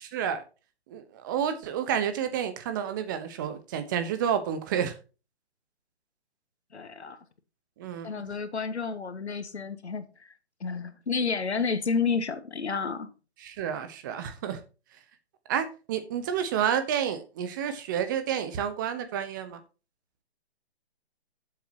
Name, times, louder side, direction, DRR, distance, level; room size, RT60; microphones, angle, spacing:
voice 1, 0.1-0.4 0.9-4.9 7.8-8.1 13.4-14.6 15.5-19.6, right 8 dB, 20° right, 1.0 m, -30 dB
voice 2, 6.7-7.2 8.0-10.3 10.6-13.1, left 5 dB, 90° left, 1.7 m, -30 dB
12.0 x 7.6 x 2.9 m
hypercardioid pair, 160°, 32 cm